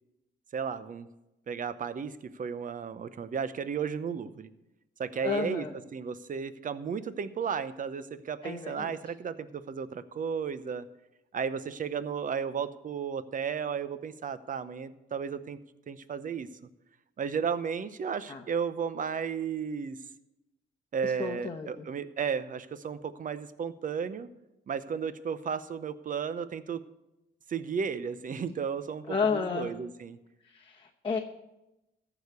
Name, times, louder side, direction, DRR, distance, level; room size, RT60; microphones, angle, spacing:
voice 1, 0.5-1.1 1.5-4.5 5.0-5.7 5.9-10.9 11.3-15.6 15.9-16.5 17.2-20.0 20.9-24.3 24.7-26.8 27.5-30.2, right 6 dB, 40° right, 14 dB, 0.8 m, -34 dB
voice 2, 5.2-5.7 8.4-9.0 18.3-18.4 21.0-21.9 29.1-29.7 30.4-31.2, left 5 dB, 25° left, 1 dB, 1.0 m, -32 dB
14.0 x 4.9 x 8.2 m, 0.94 s
cardioid pair, 90°, 20 cm